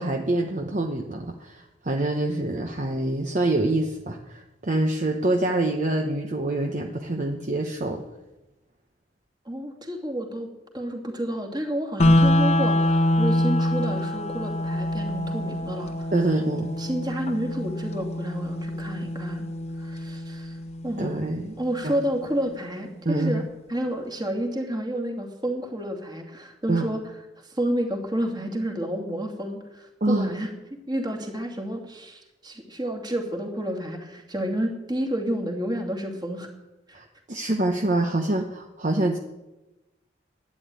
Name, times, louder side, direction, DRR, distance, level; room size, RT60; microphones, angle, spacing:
voice 1, 0.0-8.0 16.1-16.7 21.0-21.6 21.8-21.9 23.0-23.4 26.7-26.9 30.0-30.3 36.9-39.2, right 2 dB, 45° right, 2 dB, 1.0 m, -26 dB
voice 2, 9.5-16.1 16.8-19.4 19.8-20.6 20.8-21.2 21.6-23.4 23.7-27.0 27.5-30.5 30.9-36.5 36.9-37.0, right 1 dB, 25° right, 2 dB, 2.5 m, -30 dB
sound 1, 12.0-22.0, left 1 dB, 35° left, 1.0 m, -25 dB
12.0 x 10.5 x 9.1 m, 1.0 s
head